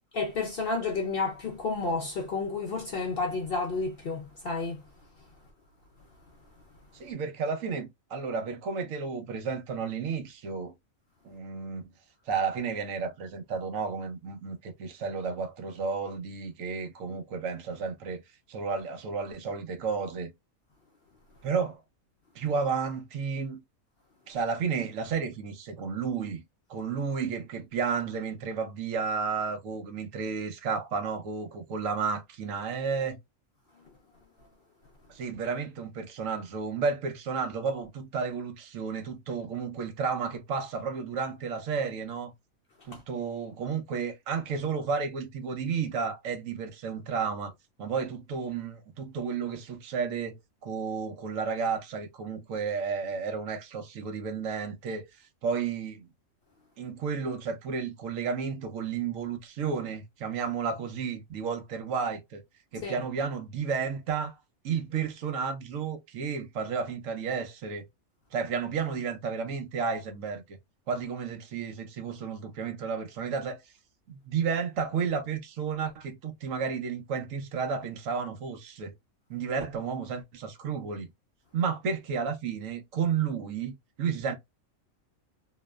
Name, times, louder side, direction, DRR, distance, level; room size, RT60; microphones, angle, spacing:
voice 1, 0.1-4.8 42.9-43.0 62.8-63.0, left 3 dB, 60° left, 0.6 m, -31 dB
voice 2, 6.9-10.7 11.2-11.9 12.3-18.2 18.5-20.3 21.4-21.8 22.3-23.6 24.3-26.4 26.7-33.2 35.1-42.3 42.8-47.5 47.8-56.1 56.8-62.4 62.7-64.4 64.6-67.9 68.3-70.4 70.9-73.6 74.1-78.9 79.3-81.1 81.5-84.3, right 5 dB, 75° right, 1.1 m, -32 dB
2.9 x 2.1 x 2.2 m
omnidirectional pair, 1.4 m